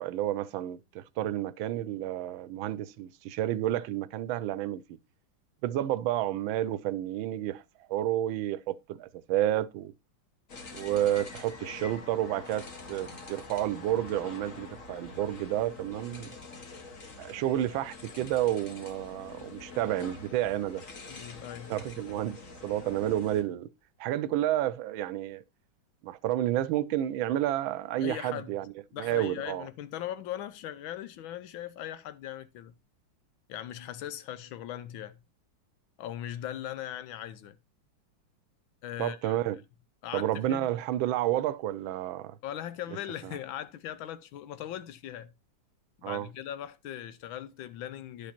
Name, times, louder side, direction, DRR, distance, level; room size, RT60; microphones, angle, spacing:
voice 1, 0.0-5.0 5.6-7.6 7.9-9.9 10.7-16.3 17.2-20.8 21.7-22.4 22.6-23.7 24.0-25.4 26.0-28.7 29.0-29.7 39.0-39.6 40.1-42.4 43.2-43.4 46.0-46.3, right 12 dB, 85° right, 1.4 m, -30 dB
sound 1, 10.5-23.4, left 3 dB, 45° left, 1.7 m, -46 dB
voice 2, 21.1-21.7 28.0-28.5 28.9-32.7 33.5-35.2 36.0-37.6 38.8-39.4 40.0-40.7 42.4-45.3 46.0-48.3, left 11 dB, 85° left, 1.5 m, -39 dB
10.5 x 5.1 x 4.3 m
omnidirectional pair, 2.1 m